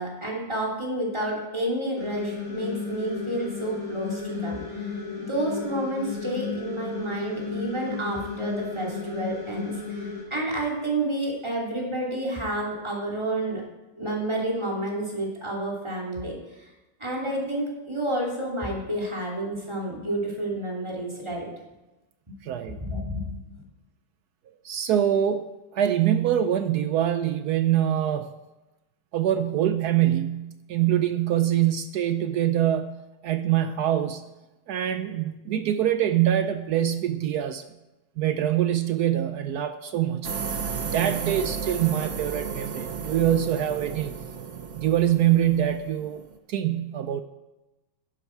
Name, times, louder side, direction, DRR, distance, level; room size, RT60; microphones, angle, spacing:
voice 1, 0.0-4.9 5.2-13.6 14.0-16.7 17.0-21.5 22.8-23.6, right 1 dB, 15° right, -3 dB, 2.9 m, -30 dB
sound 1, 2.0-10.2, left 5 dB, 15° left, 3.3 m, -34 dB
voice 2, 22.4-22.8 24.6-25.5 25.7-28.3 29.1-33.0 33.2-34.2 34.7-37.6 38.2-40.3 40.8-44.1 44.8-47.2, right 11 dB, 80° right, 10 dB, 0.9 m, -24 dB
sound 2, 40.2-46.4, right 6 dB, 45° right, 1.1 m, -34 dB
12.5 x 11.0 x 4.6 m, 1.1 s
omnidirectional pair, 2.2 m